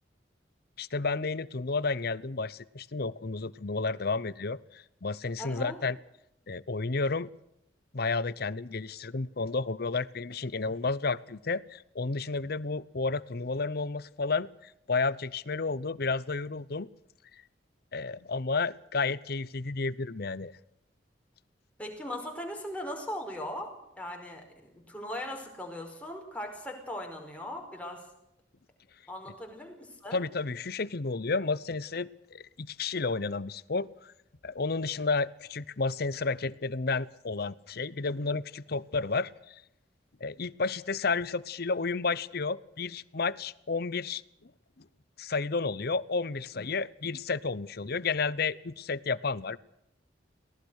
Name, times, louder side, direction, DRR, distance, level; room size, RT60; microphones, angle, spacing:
voice 1, 0.8-6.0 6.5-7.3 7.9-16.9 17.9-20.5 30.1-34.1 34.4-39.6 40.2-44.5 45.2-49.6, left 4 dB, 55° left, 19 dB, 0.8 m, -31 dB
voice 2, 5.4-5.8 21.8-23.7 24.0-24.4 24.7-28.1 29.1-30.2, left 1 dB, 5° left, 2 dB, 5.1 m, -39 dB
23.5 x 18.0 x 6.5 m, 0.79 s
head